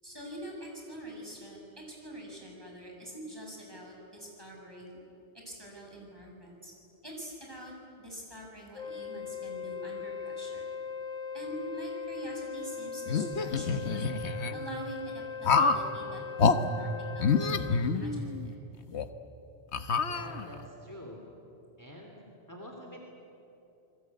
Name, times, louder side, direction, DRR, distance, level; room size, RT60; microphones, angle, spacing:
voice 1, 0.0-5.0 5.4-6.7 7.0-7.7 8.0-10.6 11.3-14.2 14.5-16.9 17.1-18.5, right 1 dB, 20° right, -1 dB, 6.8 m, -45 dB
Wind instrument woodwind instrument, 8.7-17.9, left 6 dB, 45° left, 1.1 m, -39 dB
sound 1, 13.1-14.5 15.4-15.9 16.4-16.6 17.2-18.4 18.9-19.0 19.7-20.6, left 5 dB, 80° left, 1.4 m, -27 dB
voice 2, 20.1-21.2 21.8-23.0, equal, 15° left, 1 dB, 2.9 m, -46 dB
29.0 x 21.5 x 9.5 m, 2.8 s
omnidirectional pair, 1.1 m